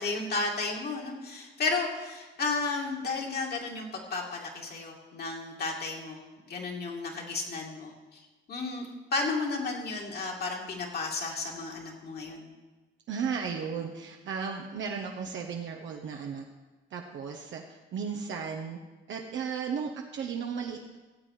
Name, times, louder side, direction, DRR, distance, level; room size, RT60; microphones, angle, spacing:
voice 1, 0.0-6.2 6.5-8.2 8.5-12.5, left 3 dB, 55° left, -1 dB, 2.5 m, -33 dB
voice 2, 13.1-16.4 16.9-18.8 19.1-21.0, right 6 dB, 70° right, 1 dB, 1.1 m, -35 dB
15.5 x 7.7 x 4.9 m, 1.2 s
cardioid pair, 90°, 20 cm